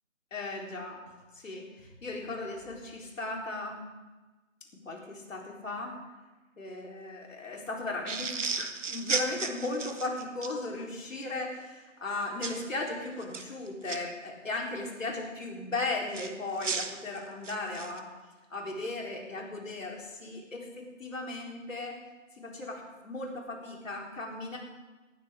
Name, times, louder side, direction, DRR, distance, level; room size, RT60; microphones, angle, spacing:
voice 1, 0.3-1.0 1.3-3.8 4.9-6.0 6.6-18.1 18.5-22.0 22.4-24.6, left 2 dB, 75° left, 0 dB, 3.9 m, -36 dB
sound 1, 8.1-10.5 12.4-12.6 13.2-14.0 16.1-18.0, right 5 dB, 65° right, 1.3 m, -34 dB
19.0 x 12.0 x 3.7 m, 1.2 s
hypercardioid pair, 170°, 39 cm